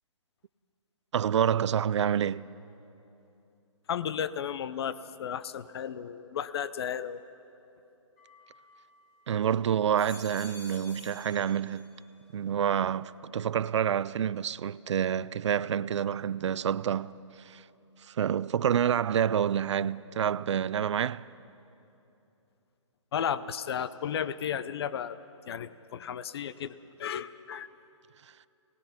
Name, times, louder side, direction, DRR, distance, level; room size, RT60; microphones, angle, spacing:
voice 1, 1.1-2.5 9.3-11.9 12.3-17.2 17.4-17.6 18.1-21.2, right 8 dB, 65° right, 0.5 m, -28 dB
voice 2, 3.9-7.2 23.1-25.2 25.5-27.7, left 8 dB, 50° left, 0.7 m, -34 dB
sound 1, 8.2-9.3 9.8-12.2 12.5-13.1, left 2 dB, 25° left, 2.7 m, -51 dB
24.0 x 19.0 x 5.9 m
hypercardioid pair, 155°, 16 cm